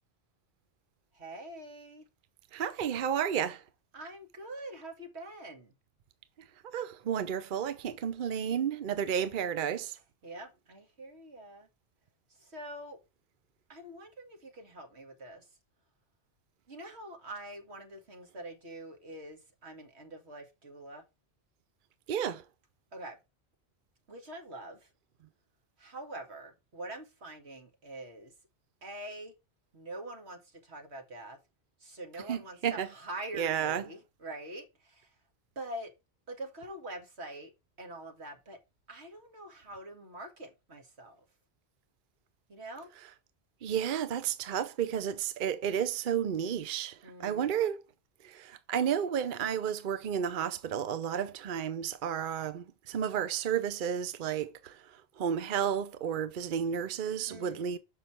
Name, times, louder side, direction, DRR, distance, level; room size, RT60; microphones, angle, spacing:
voice 1, 1.1-2.1 3.9-5.7 10.2-11.7 12.3-13.0 13.7-15.5 16.7-21.0 22.9-23.2 24.1-24.9 25.8-28.3 28.8-29.3 29.7-31.4 31.8-35.2 35.6-35.9 36.3-37.5 37.8-38.6 38.9-41.3 42.5-42.9 47.0-47.6 57.3-57.8, right 1 dB, 85° right, 2.2 m, -45 dB
voice 2, 2.5-3.6 6.7-10.0 22.1-22.4 32.3-32.9 33.4-33.8 43.6-47.8 48.2-57.8, right 8 dB, 55° right, 0.8 m, -32 dB
6.6 x 5.4 x 4.3 m
omnidirectional pair, 1.1 m